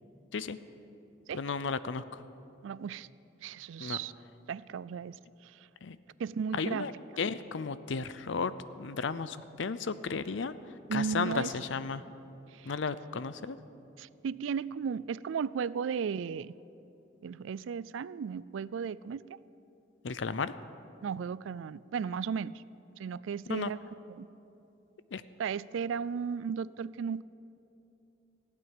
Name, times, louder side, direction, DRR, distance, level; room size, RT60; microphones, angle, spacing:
voice 1, 1.3-2.2 3.8-4.0 5.8-6.0 6.5-6.9 7.2-10.5 10.9-12.0 12.6-13.6 20.0-20.5 23.5-23.7 25.1-25.2, left 5 dB, 75° left, 14 dB, 0.5 m, -34 dB
voice 2, 2.6-3.1 3.4-4.1 4.5-5.2 5.4-5.7 6.2-6.9 10.9-11.5 12.5-12.7 14.0-16.5 17.2-19.4 21.0-22.6 23.0-23.8 24.2-24.3 25.4-27.2, right 6 dB, 80° right, 19 dB, 0.3 m, -35 dB
15.5 x 8.6 x 9.0 m, 2.8 s
head